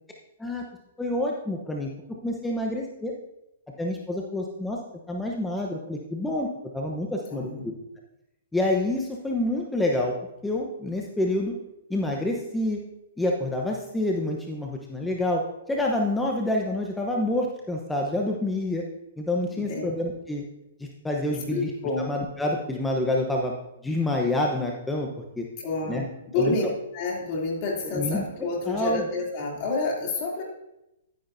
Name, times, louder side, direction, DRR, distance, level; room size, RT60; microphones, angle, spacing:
voice 1, 1.0-1.9 2.2-3.1 3.8-4.8 5.1-6.5 6.7-7.5 8.5-10.2 10.4-11.5 11.9-12.8 13.2-18.8 19.2-20.4 20.8-21.7 22.1-23.5 23.8-25.1 25.4-25.5 25.9-26.0 26.4-26.5 27.9-28.2 28.7-29.0, left 1 dB, 5° left, -1 dB, 0.9 m, -27 dB
voice 2, 7.3-7.7 19.5-19.8 21.5-22.0 25.6-26.0 26.3-26.7 26.9-30.4, left 3 dB, 40° left, -2 dB, 2.9 m, -29 dB
11.5 x 9.7 x 2.7 m, 0.89 s
hypercardioid pair, 135°, 0 cm